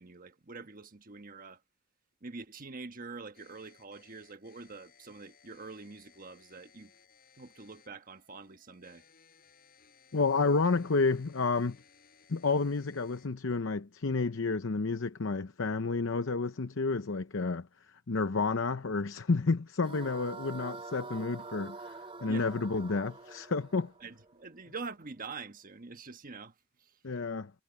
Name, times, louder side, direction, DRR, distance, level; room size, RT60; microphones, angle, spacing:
voice 1, 0.0-1.6 2.2-6.9 7.4-9.0 22.2-22.5 24.0-27.0, right 4 dB, 45° right, 1.3 m, -45 dB
sound 1, 3.3-13.3, left 7 dB, 50° left, 7.9 m, -63 dB
voice 2, 10.1-11.8 12.3-23.9 27.0-27.5, left 4 dB, 75° left, 0.8 m, -30 dB
sound 2, 19.8-25.0, right 3 dB, 30° right, 3.2 m, -46 dB
head